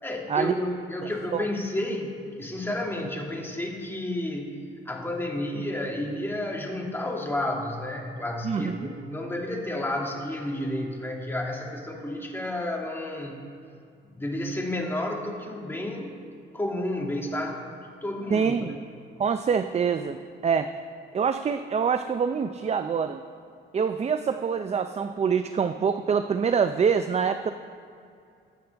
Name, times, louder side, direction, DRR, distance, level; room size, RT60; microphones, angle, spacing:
voice 1, 0.0-4.5 4.9-13.4 14.1-16.2 16.5-17.6 18.0-18.5, left 1 dB, 10° left, -1 dB, 2.3 m, -31 dB
voice 2, 8.4-8.9 18.3-18.8 19.2-20.7 21.1-23.2 23.7-27.5, right 6 dB, 35° right, 9 dB, 0.5 m, -25 dB
21.5 x 8.4 x 3.5 m, 2.4 s
cardioid pair, 90°, 20 cm